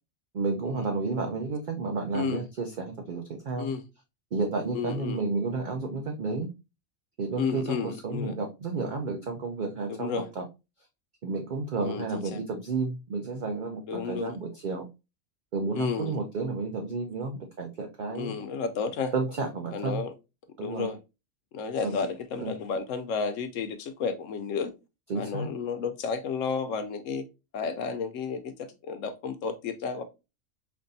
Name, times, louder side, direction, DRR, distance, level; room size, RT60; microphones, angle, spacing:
voice 1, 0.3-3.7 4.3-6.5 7.2-10.4 11.2-14.9 15.5-18.3 19.1-20.0 20.6-20.9 21.8-22.0 22.4-22.5 25.1-25.5, right 3 dB, 50° right, 0.6 m, -31 dB
voice 2, 4.7-5.2 7.4-8.3 9.9-10.3 11.8-12.4 13.9-14.4 15.7-16.2 18.1-19.1 19.7-20.1 20.6-21.0 21.5-24.7 25.1-27.3 27.5-30.0, left 5 dB, 80° left, 1.0 m, -32 dB
5.3 x 2.6 x 2.6 m
omnidirectional pair, 1.3 m